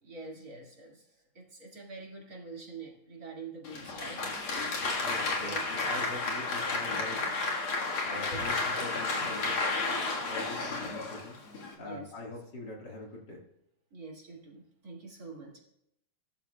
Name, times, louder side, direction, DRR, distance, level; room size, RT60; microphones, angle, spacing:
voice 1, 0.0-4.2 5.4-5.7 8.1-8.6 11.8-12.1 13.9-15.6, right 3 dB, 45° right, -3 dB, 2.8 m, -46 dB
Applause, 3.6-11.7, left 3 dB, 80° left, 2.6 m, -32 dB
voice 2, 5.0-7.3 8.0-9.6 10.3-11.4 11.8-13.4, left 2 dB, 55° left, -1 dB, 2.5 m, -43 dB
18.0 x 13.0 x 2.3 m, 0.80 s
omnidirectional pair, 2.3 m